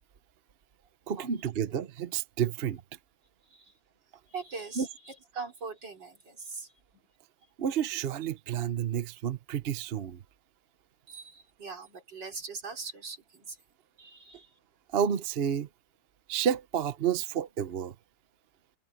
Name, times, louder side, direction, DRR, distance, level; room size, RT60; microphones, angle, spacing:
voice 1, 1.1-2.8 4.8-4.9 7.6-10.2 14.9-15.7 16.3-17.9, right 8 dB, 45° right, 0.8 m, -30 dB
voice 2, 4.3-6.7 11.1-13.6 14.0-14.6, right 4 dB, 70° right, 4.5 m, -41 dB
omnidirectional pair, 2.0 m